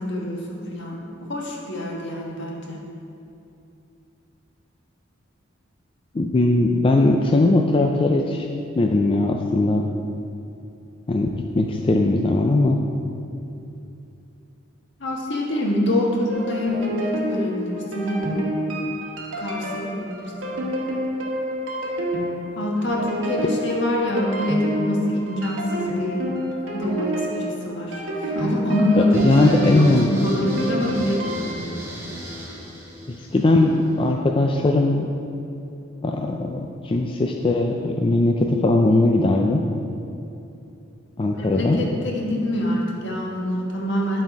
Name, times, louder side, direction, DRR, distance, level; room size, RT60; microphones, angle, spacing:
voice 1, 0.0-2.8 15.0-18.5 19.4-20.6 22.5-26.3 26.6-31.7 41.3-44.2, left 1 dB, 65° left, -2 dB, 1.4 m, -25 dB
voice 2, 6.1-8.5 8.8-9.8 11.1-12.8 29.2-30.1 33.1-35.1 36.0-39.6 41.2-41.8, left 2 dB, 25° left, 2 dB, 0.4 m, -19 dB
sound 1, 16.3-31.6, equal, 90° right, 1.3 m, -29 dB
sound 2, 29.1-34.1, equal, 15° right, 1.7 m, -37 dB
12.0 x 4.2 x 4.7 m, 2.8 s
head